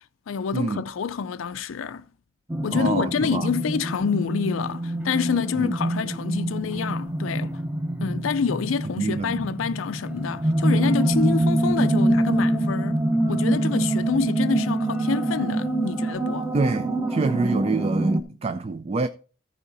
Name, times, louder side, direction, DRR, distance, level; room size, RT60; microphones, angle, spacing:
voice 1, 0.3-2.1 2.6-7.6 8.0-16.5, left 6 dB, 85° left, 0.4 m, -27 dB
sound 1, 2.5-18.2, right 1 dB, 10° right, 0.8 m, -25 dB
voice 2, 2.7-3.5 5.6-5.7 9.0-9.5 16.5-19.1, right 3 dB, 30° right, 0.4 m, -26 dB
14.5 x 4.8 x 4.0 m
head